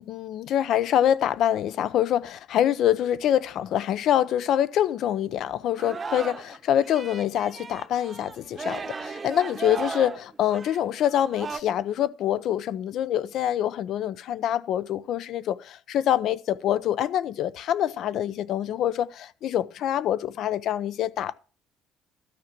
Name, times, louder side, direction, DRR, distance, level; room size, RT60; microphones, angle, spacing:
voice 1, 0.0-21.4, left 11 dB, 60° left, 0.7 m, -25 dB
Singing, 5.8-6.6 6.8-11.6, right 4 dB, 25° right, 0.9 m, -36 dB
12.5 x 6.0 x 7.6 m
cardioid pair, 135°, 0 cm